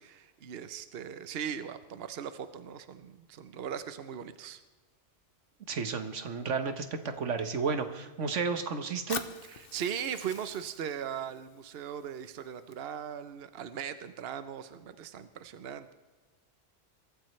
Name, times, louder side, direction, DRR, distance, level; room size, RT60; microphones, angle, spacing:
voice 1, 0.0-4.6 9.5-15.9, right 8 dB, 60° right, 11 dB, 1.0 m, -39 dB
voice 2, 5.7-6.9 7.2-9.2, right 5 dB, 90° right, 8 dB, 1.5 m, -32 dB
Fire, 9.1-13.1, left 6 dB, 55° left, 1.0 m, -45 dB
23.0 x 13.5 x 3.2 m, 1.3 s
omnidirectional pair, 1.2 m